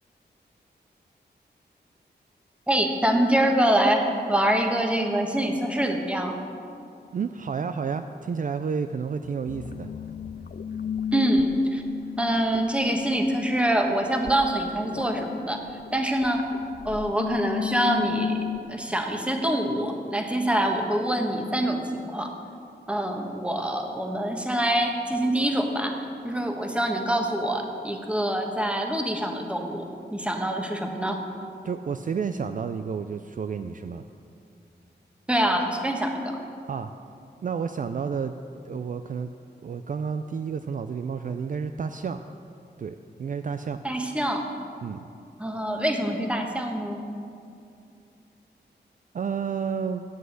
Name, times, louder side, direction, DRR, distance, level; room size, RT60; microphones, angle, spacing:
voice 1, 2.7-6.4 11.1-11.8 12.2-16.6 16.8-18.4 18.7-22.4 22.9-31.2 35.3-36.4 43.8-44.4 45.4-47.0, right 1 dB, 5° right, 3 dB, 1.3 m, -25 dB
voice 2, 7.1-9.9 31.6-34.1 36.7-36.9 37.4-38.3 38.6-39.3 39.6-42.2 42.8-43.8 44.8-45.0 49.1-50.0, right 6 dB, 50° right, 9 dB, 0.4 m, -30 dB
sound 1, 9.5-18.6, left 9 dB, 55° left, 0.5 m, -35 dB
8.0 x 7.6 x 8.0 m, 2.5 s
cardioid pair, 65°, 18 cm